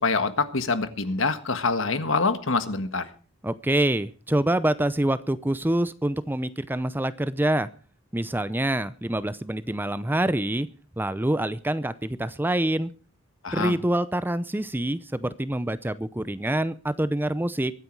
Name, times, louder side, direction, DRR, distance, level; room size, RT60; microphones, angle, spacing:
voice 1, 0.0-3.1 13.4-13.8, left 4 dB, 75° left, 10 dB, 1.6 m, -25 dB
voice 2, 3.4-7.7 8.1-10.7 11.0-12.9 13.5-17.7, right 1 dB, 10° right, 14 dB, 0.6 m, -26 dB
23.0 x 9.4 x 4.6 m, 0.37 s
head